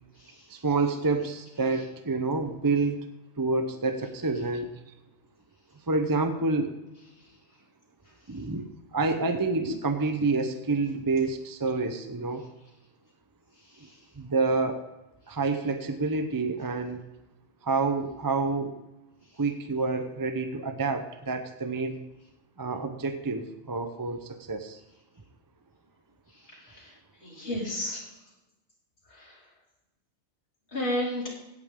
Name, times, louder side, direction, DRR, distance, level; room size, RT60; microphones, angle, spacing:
voice 1, 0.5-3.0 3.4-4.8 5.9-6.7 8.3-8.7 8.9-12.4 14.2-14.8 15.3-17.0 17.6-18.7 19.4-22.0 22.6-24.8, right 3 dB, 20° right, 8 dB, 0.7 m, -28 dB
voice 2, 26.5-26.9 27.2-28.0 29.1-29.4 30.7-31.3, left 1 dB, 70° left, -5 dB, 3.5 m, -33 dB
16.5 x 8.6 x 3.7 m, 1.0 s
omnidirectional pair, 1.1 m